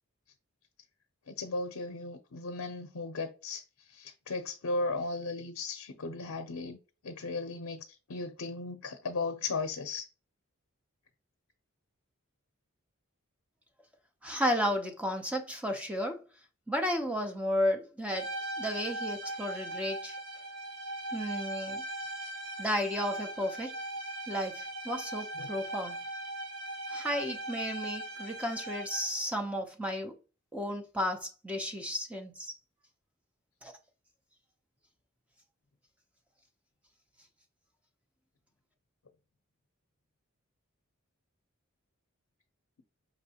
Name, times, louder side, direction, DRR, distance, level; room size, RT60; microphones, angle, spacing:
voice 1, 1.3-3.6 3.9-6.8 7.0-10.1 25.4-25.5, left 3 dB, 80° left, 0.5 m, -36 dB
voice 2, 14.2-16.2 16.7-18.3 18.6-20.2 21.1-21.8 22.6-23.7 24.3-26.0 26.9-30.1 30.5-32.5 33.6-33.7, equal, 5° right, 0.5 m, -33 dB
sound 1, 18.1-29.2, right 1 dB, 85° right, 2.2 m, -39 dB
5.3 x 2.9 x 2.8 m
head